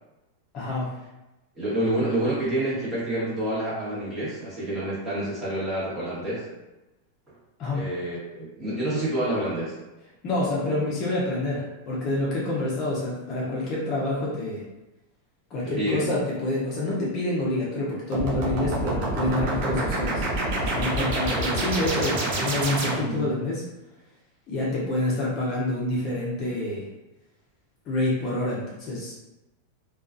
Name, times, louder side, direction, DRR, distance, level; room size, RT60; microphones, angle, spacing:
voice 1, 0.5-0.9 7.6-7.9 10.2-14.6 15.5-20.3 20.6-23.6 24.5-26.9 27.9-29.1, left 2 dB, 35° left, -5 dB, 0.6 m, -27 dB
voice 2, 1.5-6.4 7.7-9.8 15.8-16.1, right 1 dB, 15° right, -9 dB, 1.1 m, -28 dB
sound 1, 18.1-23.3, right 2 dB, 50° right, 0.6 m, -27 dB
2.3 x 2.3 x 2.5 m, 1.0 s
supercardioid pair, 145°, 0 cm